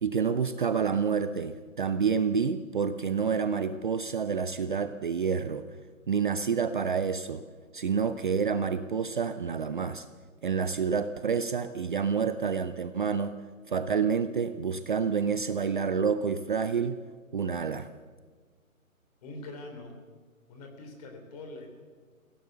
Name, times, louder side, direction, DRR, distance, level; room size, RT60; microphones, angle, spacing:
voice 1, 0.0-5.7 6.1-7.4 7.7-10.0 10.4-13.3 13.7-17.0 17.3-17.9, right 6 dB, 35° right, 10 dB, 0.7 m, -28 dB
voice 2, 19.2-20.0 20.5-21.7, left 2 dB, 25° left, 4 dB, 3.8 m, -43 dB
22.5 x 16.5 x 6.9 m, 1.5 s
figure-of-eight pair, 150°, 42 cm